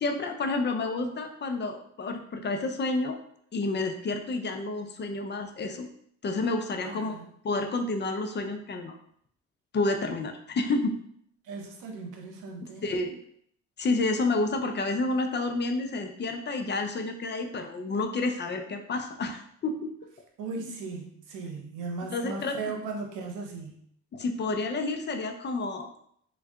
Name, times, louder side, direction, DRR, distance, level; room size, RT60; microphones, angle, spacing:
voice 1, 0.0-3.2 3.5-5.9 6.2-7.2 7.4-9.0 9.7-11.0 12.8-13.2 13.8-20.0 22.1-22.5 24.1-26.0, left 3 dB, 35° left, 6 dB, 0.5 m, -30 dB
voice 2, 6.8-7.3 11.4-12.9 20.4-23.8, right 4 dB, 90° right, 1 dB, 0.8 m, -37 dB
3.6 x 2.3 x 3.5 m, 0.66 s
cardioid pair, 90°, 30 cm